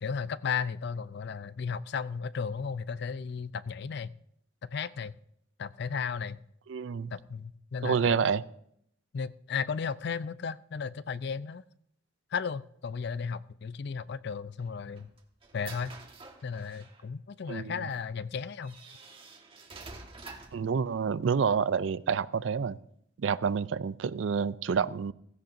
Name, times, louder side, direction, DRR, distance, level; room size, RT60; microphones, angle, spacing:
voice 1, 0.0-4.1 4.6-5.1 5.6-6.4 7.1-8.3 9.1-11.6 12.3-15.1 15.5-15.9 16.4-18.8, left 6 dB, 60° left, 16 dB, 0.5 m, -35 dB
voice 2, 6.7-7.1 7.8-8.4 17.5-17.7 20.5-22.8 23.2-25.1, right 6 dB, 75° right, 17 dB, 0.4 m, -28 dB
sound 1, 14.6-17.0 17.9-18.0 18.6-20.7, right 3 dB, 30° right, 1.5 m, -48 dB
16.0 x 16.0 x 2.6 m, 0.71 s
head